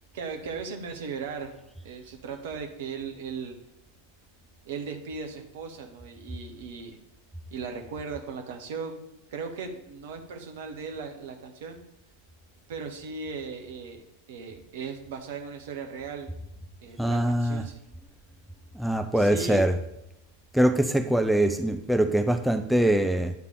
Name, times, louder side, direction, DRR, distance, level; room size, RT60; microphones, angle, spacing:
voice 1, 0.1-1.5 1.8-3.5 4.6-7.0 7.5-9.0 9.3-11.8 12.7-16.3 16.8-17.8 19.1-19.7, right 5 dB, 55° right, 4 dB, 1.1 m, -37 dB
voice 2, 17.0-17.6 18.8-19.7 20.5-23.3, right 1 dB, ahead, 6 dB, 0.4 m, -23 dB
9.2 x 3.3 x 6.7 m, 0.85 s
figure-of-eight pair, 90°, 0 cm